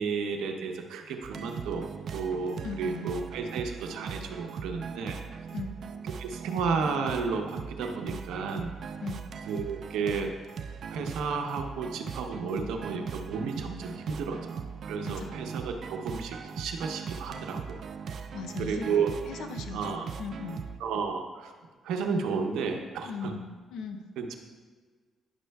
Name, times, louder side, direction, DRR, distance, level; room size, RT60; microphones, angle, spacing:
voice 1, 0.0-1.9 2.1-5.2 6.2-8.7 9.5-10.3 10.9-17.8 18.6-19.1 19.7-20.1 20.8-21.5 21.8-23.3 24.2-24.4, right 5 dB, 85° right, 4 dB, 0.7 m, -32 dB
sound 1, 1.2-20.8, right 6 dB, 60° right, 0.4 m, -39 dB
voice 2, 2.6-3.1 5.5-5.7 9.0-9.3 15.0-15.4 18.3-19.0 19.3-20.6 23.1-24.0, left 5 dB, 85° left, 6 dB, 0.6 m, -38 dB
10.5 x 6.2 x 2.3 m, 1.5 s
cardioid pair, 90°, 0 cm